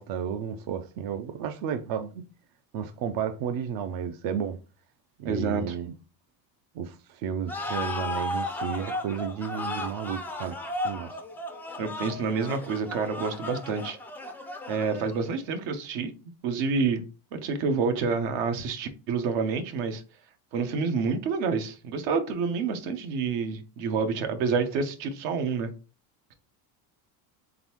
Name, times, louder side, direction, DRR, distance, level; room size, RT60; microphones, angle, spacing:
voice 1, 0.0-2.2 2.7-4.6 5.2-5.9 6.7-11.2, right 8 dB, 50° right, 0.5 m, -32 dB
voice 2, 5.2-5.7 11.8-14.0 14.7-16.1 16.4-17.0 17.3-20.0 20.5-25.7, right 5 dB, 70° right, 1.0 m, -28 dB
sound 1, 7.5-15.3, left 2 dB, 5° left, 0.3 m, -35 dB
3.9 x 3.4 x 2.9 m
supercardioid pair, 120°, 46 cm